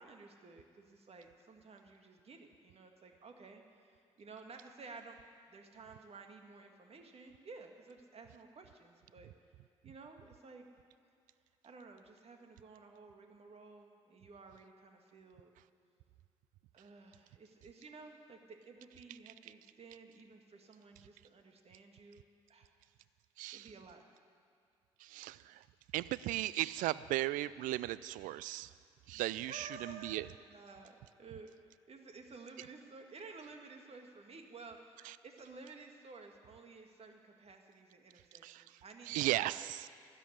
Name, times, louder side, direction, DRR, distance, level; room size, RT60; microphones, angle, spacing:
voice 1, 0.0-5.2 5.5-9.3 9.8-10.7 11.6-15.5 16.7-22.8 23.5-24.0 29.5-31.5 31.9-39.7, right 4 dB, 45° right, 4 dB, 2.1 m, -54 dB
voice 2, 23.4-23.7 25.0-25.6 25.9-28.7 29.1-30.3 35.1-35.2 38.4-38.6 39.1-39.9, right 16 dB, 70° right, 18 dB, 0.4 m, -36 dB
13.0 x 9.1 x 9.8 m, 2.4 s
hypercardioid pair, 50°, 14 cm